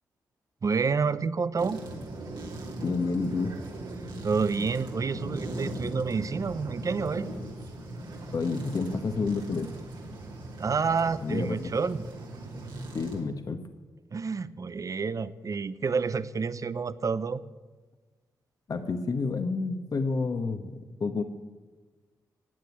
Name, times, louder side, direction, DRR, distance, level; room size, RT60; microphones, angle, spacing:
voice 1, 0.6-1.8 4.2-7.3 10.6-12.0 14.1-17.4, right 5 dB, 45° right, 16 dB, 0.7 m, -29 dB
sound 1, 1.6-13.2, right 1 dB, 75° right, 2.8 m, -39 dB
voice 2, 2.8-3.5 8.3-9.7 11.2-11.6 12.9-13.6 18.7-21.2, left 4 dB, 55° left, 8 dB, 1.2 m, -29 dB
15.0 x 9.2 x 8.4 m, 1.3 s
supercardioid pair, 50°, 8 cm